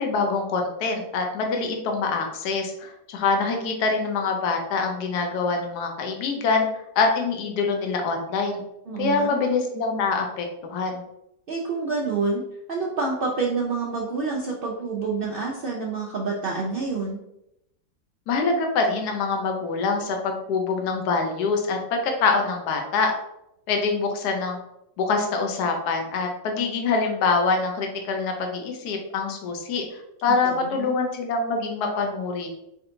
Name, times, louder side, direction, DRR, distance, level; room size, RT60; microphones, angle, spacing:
voice 1, 0.0-6.7 7.0-8.6 9.0-11.0 18.3-23.1 23.7-24.6 25.0-29.8 30.2-32.5, left 4 dB, 75° left, 3 dB, 1.3 m, -25 dB
voice 2, 8.9-9.4 11.5-12.4 12.7-17.2 30.3-30.5 30.8-30.9, right 4 dB, 80° right, -3 dB, 0.5 m, -27 dB
4.3 x 3.8 x 2.6 m, 0.83 s
omnidirectional pair, 1.8 m